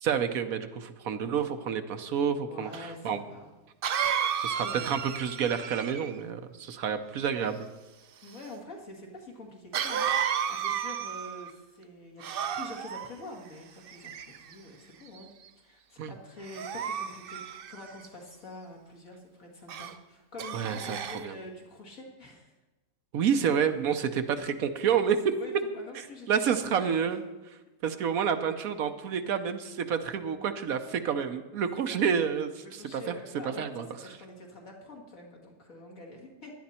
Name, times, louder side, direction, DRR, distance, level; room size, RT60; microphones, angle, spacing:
voice 1, 0.0-3.2 4.4-7.7 16.0-16.1 20.5-21.0 21.2-21.3 23.1-25.4 26.3-27.2 27.8-32.6 32.9-33.2 33.4-33.8, right 7 dB, 75° right, 8 dB, 1.3 m, -29 dB
voice 2, 2.5-3.5 3.9-4.0 4.6-4.8 8.2-15.3 15.6-22.5 25.4-26.4 26.6-27.0 31.9-32.0 32.6-36.5, left 2 dB, 65° left, 0 dB, 2.5 m, -46 dB
Cough, 2.7-2.8 3.8-6.2 9.7-11.5 12.2-13.1 13.9-14.5 15.1-15.4 16.4-18.1 19.7-19.9 20.4-21.3, right 8 dB, 55° right, 0.6 m, -32 dB
16.5 x 11.5 x 4.3 m, 1.1 s
omnidirectional pair, 1.5 m